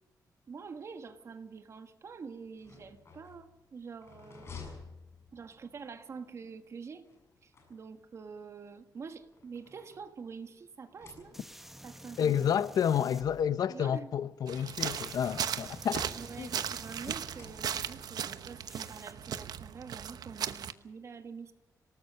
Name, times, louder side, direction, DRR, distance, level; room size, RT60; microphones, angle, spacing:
voice 1, 0.5-4.6 5.3-7.1 7.4-11.4 11.8-12.5 13.7-14.1 16.1-21.5, right 5 dB, 45° right, 1.7 m, -46 dB
sound 1, 2.5-5.8 7.0-8.2 9.0-10.4 10.8-11.8 12.7-12.8 13.1-13.2 14.4-15.7 17.0-18.1, left 5 dB, 40° left, 7.0 m, -53 dB
sound 2, 11.3-13.4 14.8-18.0 18.7-19.1, right 1 dB, 5° right, 1.6 m, -51 dB
voice 2, 12.2-16.1 16.4-16.5, left 8 dB, 70° left, 0.8 m, -30 dB
sound 3, 14.5-20.7, right 8 dB, 75° right, 1.0 m, -37 dB
27.0 x 19.0 x 5.7 m
wide cardioid pair, 170°, 7 cm